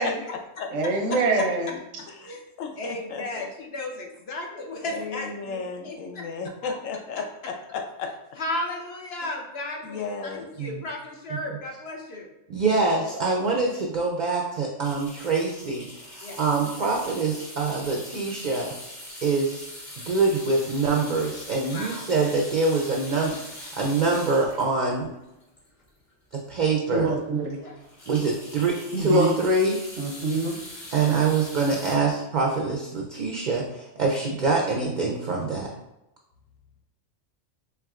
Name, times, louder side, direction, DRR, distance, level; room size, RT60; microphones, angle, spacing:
voice 1, 0.0-0.7 2.1-3.5 4.9-8.1 9.8-10.5, left 5 dB, 85° left, 4 dB, 1.0 m, -35 dB
voice 2, 0.7-1.7 26.9-27.6 28.9-29.3 30.0-30.6, right 3 dB, 90° right, 1 dB, 1.1 m, -25 dB
voice 3, 2.8-6.3 6.6-6.7 8.4-12.3 16.2-16.4 20.0-20.1 21.7-22.1 27.6-27.8 31.9-32.0, left 1 dB, 60° left, 1 dB, 0.8 m, -34 dB
voice 4, 12.5-18.7 19.2-19.7 20.1-25.1 26.5-27.1 28.1-29.8 30.9-35.7, right 3 dB, 55° right, 0 dB, 0.5 m, -25 dB
sound 1, 14.8-26.1 26.6-26.7 27.0-27.1 27.4-32.0, left 1 dB, 40° left, 1.4 m, -42 dB
4.6 x 3.3 x 2.4 m, 0.92 s
omnidirectional pair, 1.3 m